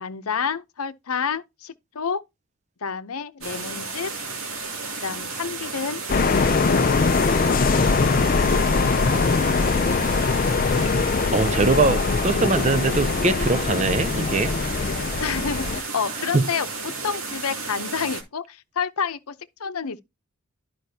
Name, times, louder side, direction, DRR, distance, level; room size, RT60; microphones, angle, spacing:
voice 1, 0.0-2.2 2.8-4.1 5.0-6.0 6.7-7.3 8.5-9.0 9.3-9.4 15.2-19.3 19.6-20.0, left 6 dB, 90° left, 0.7 m, -29 dB
sound 1, 3.4-18.2, right 4 dB, 75° right, 2.7 m, -33 dB
sound 2, 6.1-15.8, left 4 dB, 40° left, 0.4 m, -22 dB
voice 2, 11.3-14.5 16.3-16.4, right 3 dB, 30° right, 0.5 m, -22 dB
12.0 x 5.1 x 2.8 m
head